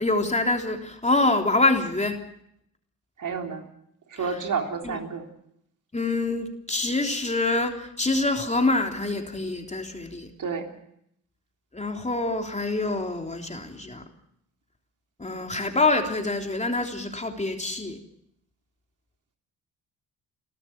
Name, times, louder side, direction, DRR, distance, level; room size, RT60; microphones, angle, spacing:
voice 1, 0.0-2.2 4.8-5.0 5.9-10.3 11.7-14.0 15.2-18.0, left 2 dB, 15° left, 3 dB, 3.5 m, -25 dB
voice 2, 3.2-3.7 4.1-5.3 10.4-10.7, right 5 dB, 50° right, 3 dB, 3.6 m, -30 dB
30.0 x 13.5 x 7.3 m, 0.73 s
hypercardioid pair, 55°, 41 cm